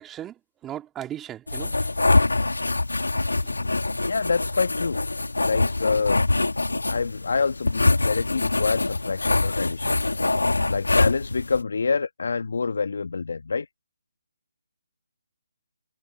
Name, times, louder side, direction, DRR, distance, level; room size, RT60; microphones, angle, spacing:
voice 1, 0.0-1.9 3.4-3.5, right 11 dB, 10° right, 2.4 m, -37 dB
sound 1, 1.5-11.6, left 2 dB, 85° left, 3.8 m, -24 dB
voice 2, 4.1-5.0 5.4-6.2 6.9-10.0 10.7-13.7, left 4 dB, 65° left, 1.6 m, -26 dB
figure-of-eight pair, 150°, 0 cm